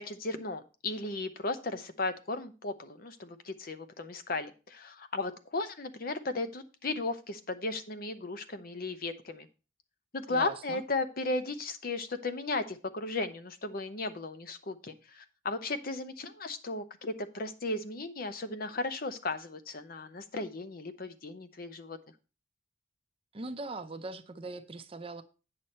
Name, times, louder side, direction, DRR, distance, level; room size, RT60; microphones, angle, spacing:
voice 1, 0.0-9.5 10.1-22.0, left 2 dB, 50° left, 10 dB, 0.8 m, -35 dB
voice 2, 10.3-10.8 23.3-25.2, right 3 dB, 30° right, 9 dB, 0.6 m, -40 dB
8.9 x 6.6 x 4.3 m, 0.33 s
head